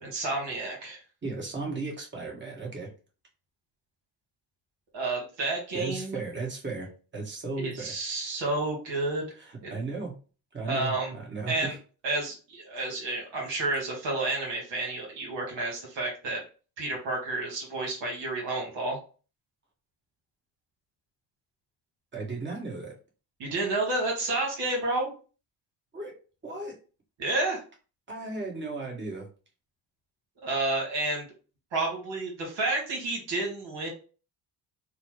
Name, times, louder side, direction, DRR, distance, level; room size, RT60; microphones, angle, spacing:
voice 1, 0.0-1.0 4.9-6.2 7.6-9.3 9.6-9.7 10.7-11.1 11.5-11.7 12.0-16.4 16.8-19.0 23.4-25.1 27.2-27.6 30.4-31.3 31.7-33.9, right 2 dB, 65° right, -1 dB, 1.4 m, -30 dB
voice 2, 1.2-2.9 5.7-8.0 9.3-10.1 10.5-11.8 22.1-22.9 25.9-26.1 26.4-26.8 28.1-29.3, right 3 dB, 25° right, -1 dB, 1.4 m, -35 dB
2.9 x 2.1 x 3.0 m, 0.36 s
hypercardioid pair, 55°, 48 cm